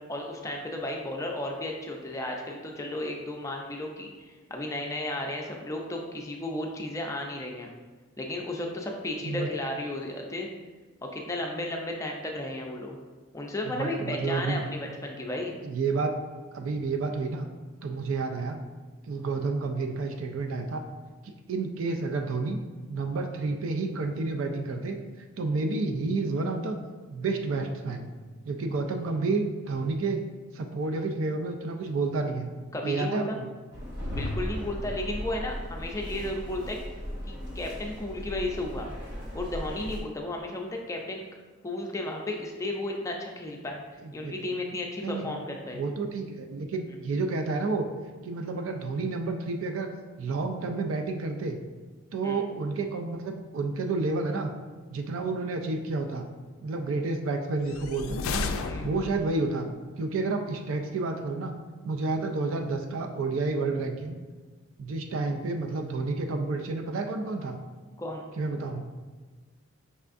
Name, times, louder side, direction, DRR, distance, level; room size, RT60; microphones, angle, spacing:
voice 1, 0.1-7.7 8.2-10.5 11.0-13.0 13.3-15.6 32.7-33.4 34.1-36.8 37.3-38.9 39.3-41.2 41.6-43.8 44.1-45.9 46.9-47.0 52.2-52.4 58.6-58.9 68.0-68.3, left 1 dB, 15° left, 1 dB, 0.4 m, -34 dB
voice 2, 13.7-14.7 15.6-16.2 16.5-17.5 17.8-18.6 19.0-20.8 21.2-22.6 22.9-25.0 25.4-26.8 27.1-28.1 28.4-30.2 30.5-32.5 32.8-33.4 44.0-44.5 45.0-45.3 45.7-47.9 48.2-49.9 50.2-51.6 52.1-54.5 54.9-56.3 56.6-58.5 58.8-59.7 60.0-61.5 61.8-64.2 64.8-67.6 68.4-68.9, right 3 dB, 75° right, 4 dB, 0.4 m, -30 dB
sound 1, 33.7-40.0, equal, 55° right, 1.0 m, -36 dB
sound 2, 57.6-59.4, left 4 dB, 90° left, 0.3 m, -33 dB
5.4 x 3.3 x 2.5 m, 1.4 s
head